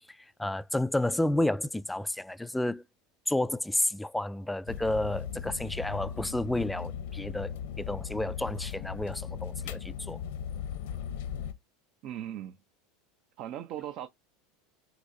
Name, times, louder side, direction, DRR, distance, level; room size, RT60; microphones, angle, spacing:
voice 1, 0.4-2.8 3.3-7.5 7.8-10.2, left 1 dB, 5° left, 0.3 m, -31 dB
sound 1, 4.7-11.5, left 8 dB, 75° left, 0.7 m, -38 dB
voice 2, 12.0-12.6 13.4-14.1, right 11 dB, 55° right, 0.5 m, -38 dB
6.1 x 2.8 x 2.6 m
hypercardioid pair, 95°, 0 cm